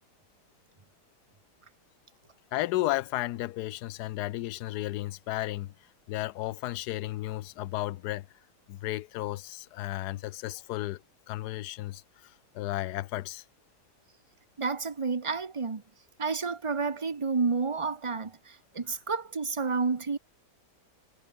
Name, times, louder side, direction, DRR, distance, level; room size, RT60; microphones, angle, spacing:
voice 1, 2.5-5.7 6.1-8.3 8.7-13.4, left 16 dB, 75° left, 1.1 m, -33 dB
voice 2, 14.6-15.8 16.2-20.2, right 4 dB, 25° right, 0.7 m, -30 dB
omnidirectional pair, 1.8 m